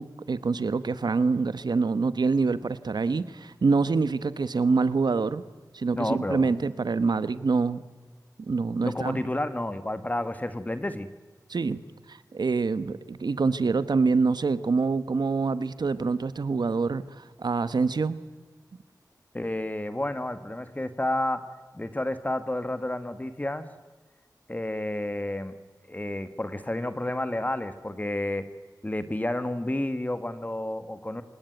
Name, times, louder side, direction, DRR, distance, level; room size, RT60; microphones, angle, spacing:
voice 1, 0.0-5.4 5.7-7.8 8.4-9.2 11.5-11.8 12.1-18.2, right 4 dB, 90° right, 14 dB, 1.1 m, -26 dB
voice 2, 5.9-6.5 8.8-11.1 19.3-21.4 21.7-23.6 24.5-25.6 25.9-28.4 28.8-31.2, left 1 dB, 25° left, 11 dB, 1.4 m, -30 dB
26.5 x 19.0 x 9.2 m, 1.4 s
wide cardioid pair, 85°, 7 cm